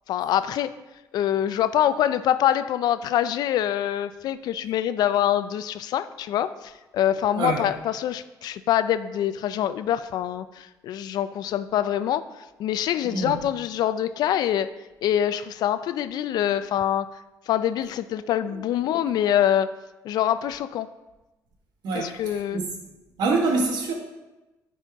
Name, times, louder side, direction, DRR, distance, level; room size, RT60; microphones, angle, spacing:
voice 1, 0.1-0.7 1.1-14.7 15.0-17.2 17.5-19.7 20.0-20.9 21.9-22.6, left 11 dB, 70° left, 13 dB, 0.4 m, -25 dB
voice 2, 7.4-7.7 13.0-13.4 21.8-22.7 23.2-23.9, right 3 dB, 75° right, 0 dB, 1.6 m, -26 dB
10.0 x 4.3 x 3.5 m, 1.1 s
cardioid pair, 95°, 7 cm